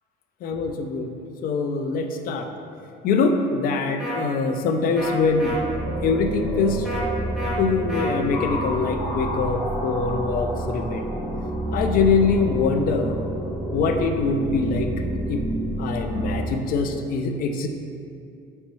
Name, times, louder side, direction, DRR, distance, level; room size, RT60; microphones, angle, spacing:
voice 1, 0.4-1.1 1.4-2.5 3.0-5.6 6.0-6.9 7.6-11.0 11.7-13.2 13.7-14.9 15.3-15.4 15.8-17.7, left 4 dB, 60° left, 5 dB, 0.4 m, -23 dB
sound 1, 4.0-4.2 5.0-5.1 5.4-5.5 6.9-7.0 7.4-7.5 7.9-8.1, left 2 dB, 5° right, 1.1 m, -31 dB
sound 2, 5.0-16.5, right 1 dB, 35° left, 1.2 m, -29 dB
4.2 x 3.2 x 3.0 m, 2.5 s
cardioid pair, 110°, 17 cm